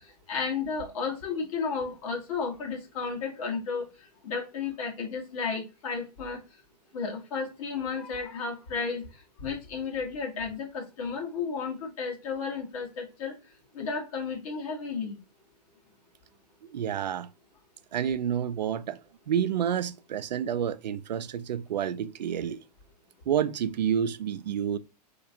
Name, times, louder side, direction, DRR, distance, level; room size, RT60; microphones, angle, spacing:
voice 1, 0.3-3.9 4.2-6.4 6.9-9.0 9.4-13.3 13.7-15.1, left 5 dB, 55° left, 1.3 m, -33 dB
voice 2, 16.7-17.3 17.9-19.0 19.3-22.6 23.3-24.8, right 9 dB, 85° right, 0.4 m, -29 dB
3.3 x 2.9 x 2.7 m
hypercardioid pair, 125°, 21 cm